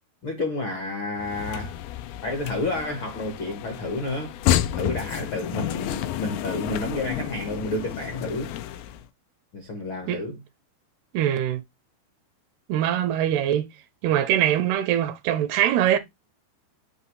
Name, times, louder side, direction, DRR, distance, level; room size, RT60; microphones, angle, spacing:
voice 1, 0.2-1.8 2.2-4.4 4.7-8.5 9.5-10.4, left 2 dB, 70° left, 1.2 m, -30 dB
sound 1, 1.2-9.0, left 12 dB, 85° left, 2.0 m, -30 dB
voice 2, 11.1-11.6 12.7-13.7 14.0-16.0, right 11 dB, 80° right, 2.4 m, -22 dB
8.3 x 3.1 x 4.6 m
omnidirectional pair, 4.9 m